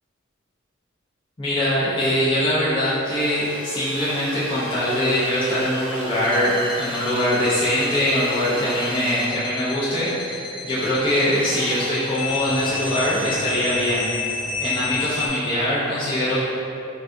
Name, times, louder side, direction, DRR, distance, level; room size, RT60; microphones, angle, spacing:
voice 1, 1.4-16.4, equal, 25° left, -11 dB, 0.5 m, -22 dB
Drill, 3.0-9.3 10.7-11.9 12.3-13.4, right 1 dB, 80° right, 0.8 m, -36 dB
sound 1, 6.2-15.3, left 4 dB, 75° left, 0.4 m, -31 dB
3.9 x 2.3 x 2.5 m, 2.7 s
head